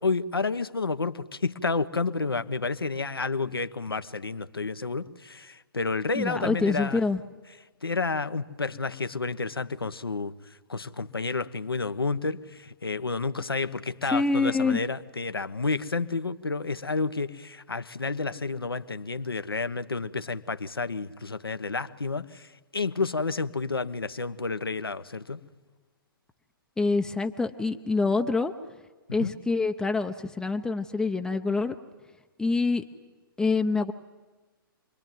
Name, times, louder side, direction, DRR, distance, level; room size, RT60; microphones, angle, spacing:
voice 1, 0.0-7.0 7.8-10.3 10.7-25.4 29.2-29.3, left 3 dB, 85° left, 11 dB, 1.3 m, -30 dB
voice 2, 6.2-7.2 14.1-14.8 26.8-28.5 29.1-31.8 32.4-32.8 33.4-33.9, left 3 dB, 5° left, 4 dB, 0.9 m, -26 dB
28.0 x 22.0 x 9.3 m, 1.3 s
figure-of-eight pair, 125°, 12 cm